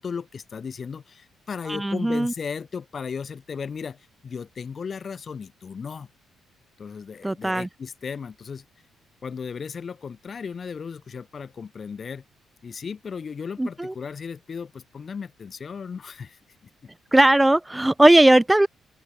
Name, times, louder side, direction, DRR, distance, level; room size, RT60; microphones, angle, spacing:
voice 1, 0.0-6.1 6.8-8.6 9.2-12.2 12.6-16.4, left 6 dB, 45° left, 1.8 m, -35 dB
voice 2, 1.7-2.3 7.2-7.7 13.6-13.9 17.1-18.7, right 1 dB, 10° right, 0.5 m, -18 dB
open air
cardioid pair, 90°, 0 cm